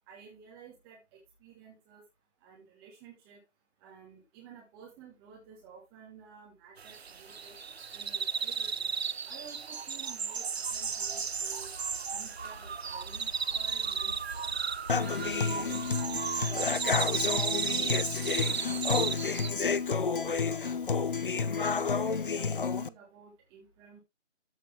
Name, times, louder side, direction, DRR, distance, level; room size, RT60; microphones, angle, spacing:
voice 1, 0.1-2.0 2.4-3.4 3.8-7.6 7.9-8.9 9.2-11.7 12.1-14.6 14.9-21.0 21.6-24.0, right 6 dB, 5° right, -3 dB, 1.3 m, -52 dB
sound 1, 6.8-19.5, right 6 dB, 60° right, 0.7 m, -34 dB
sound 2, 10.6-22.3, right 1 dB, 30° right, 0.5 m, -50 dB
Human voice / Acoustic guitar, 14.9-22.9, left 5 dB, 45° left, 0.7 m, -30 dB
13.5 x 6.1 x 3.2 m, 0.23 s
figure-of-eight pair, 160°, 36 cm